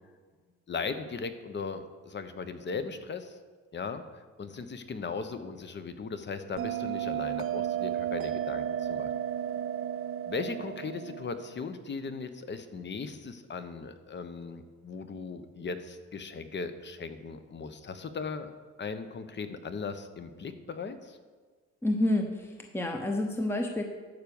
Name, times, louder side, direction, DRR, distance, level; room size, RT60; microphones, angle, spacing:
voice 1, 0.7-3.4 3.7-4.0 4.4-9.1 10.3-18.5 18.8-21.2, left 4 dB, 35° left, 10 dB, 0.9 m, -38 dB
Bell, 6.6-11.6, right 10 dB, 45° right, 0.5 m, -33 dB
voice 2, 21.8-23.8, left 1 dB, 10° left, 3 dB, 0.9 m, -29 dB
12.0 x 4.7 x 7.0 m, 1.5 s
cardioid pair, 90°, 30 cm